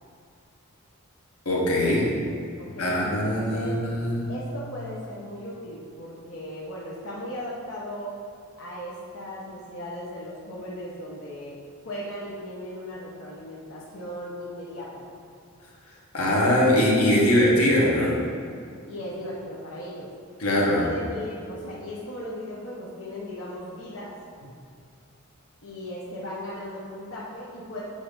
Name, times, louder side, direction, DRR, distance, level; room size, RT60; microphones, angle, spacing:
voice 1, 1.4-2.1 2.8-4.3 16.1-18.2 20.4-20.8, left 1 dB, 85° left, -4 dB, 1.4 m, -21 dB
voice 2, 2.6-3.8 4.3-8.2 8.6-11.6 11.8-15.1 18.9-20.1 20.5-24.1 25.6-27.8, left 1 dB, 60° left, -7 dB, 0.9 m, -37 dB
8.2 x 2.8 x 5.1 m, 2.3 s
head